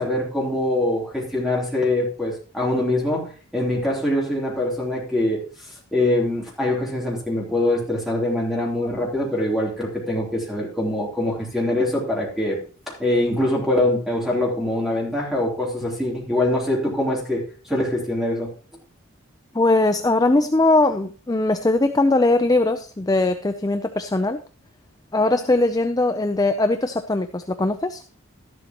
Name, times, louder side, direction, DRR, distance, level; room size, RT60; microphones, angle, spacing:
voice 1, 0.0-5.4 5.9-12.6 12.9-17.4 17.7-18.5, left 1 dB, ahead, -3 dB, 3.3 m, -23 dB
voice 2, 19.5-24.4 25.1-28.0, left 2 dB, 15° left, 8 dB, 0.5 m, -20 dB
12.5 x 11.5 x 3.0 m, 0.39 s
head